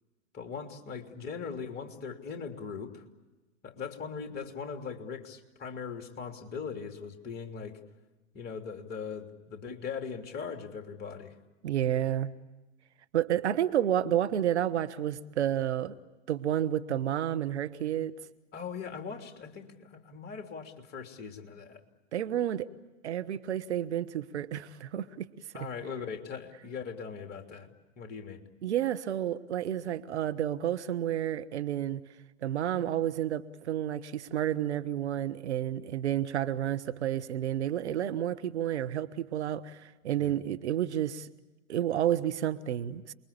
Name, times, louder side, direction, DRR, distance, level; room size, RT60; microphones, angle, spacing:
voice 1, 0.3-3.0 3.6-7.8 8.3-11.4 18.5-21.8 25.5-28.4 40.1-40.3, left 6 dB, 25° left, 4 dB, 3.2 m, -40 dB
voice 2, 11.6-12.3 13.1-16.0 16.3-18.1 22.1-22.7 23.0-25.3 28.6-32.0 32.4-41.3 41.7-43.1, right 11 dB, 60° right, 11 dB, 1.4 m, -30 dB
29.0 x 22.0 x 8.6 m, 1.1 s
hypercardioid pair, 115°, 37 cm